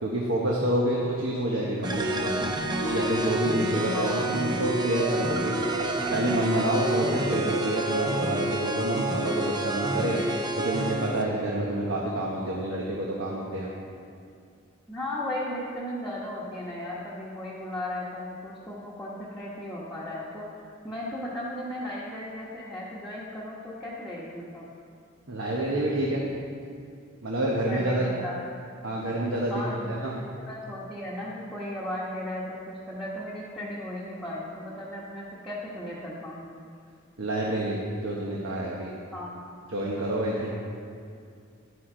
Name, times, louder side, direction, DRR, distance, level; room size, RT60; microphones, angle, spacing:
voice 1, 0.0-2.5 2.9-5.5 6.1-10.2 10.6-13.7 25.3-26.3 27.2-28.1 28.8-30.2 37.2-37.8 38.0-38.9 39.7-40.5, right 1 dB, 70° right, -3 dB, 1.1 m, -28 dB
sound 1, 1.8-11.3, right 1 dB, 20° right, 0.7 m, -28 dB
voice 2, 3.8-4.2 14.9-20.5 20.8-24.7 27.7-28.4 29.5-30.1 30.5-36.5 39.1-39.4, left 1 dB, ahead, -8 dB, 1.2 m, -36 dB
10.5 x 9.2 x 3.9 m, 2.4 s
head